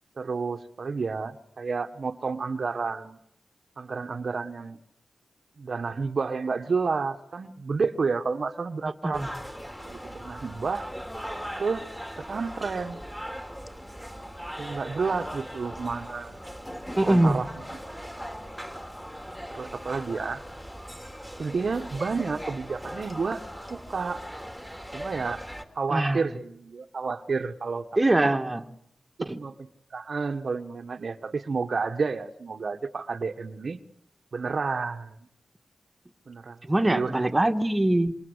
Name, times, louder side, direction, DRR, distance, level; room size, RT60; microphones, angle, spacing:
voice 1, 0.2-3.2 3.8-4.8 5.6-9.2 9.8-10.9 11.6-11.8 12.3-13.0 14.6-16.5 17.0-17.5 19.5-20.4 21.4-23.4 23.7-24.2 24.9-25.4 25.7-27.9 28.2-28.3 29.2-29.5 29.9-33.8 34.3-35.2 36.3-36.6 36.8-37.1, right 4 dB, 60° right, 8 dB, 1.3 m, -30 dB
sound 1, 9.1-25.6, equal, 5° left, 3.0 m, -39 dB
voice 2, 17.0-17.4 25.9-26.2 28.0-28.7 29.2-29.4 36.7-38.2, right 1 dB, 20° right, 6 dB, 1.8 m, -23 dB
27.0 x 26.5 x 8.1 m, 0.72 s
cardioid pair, 80°, 0 cm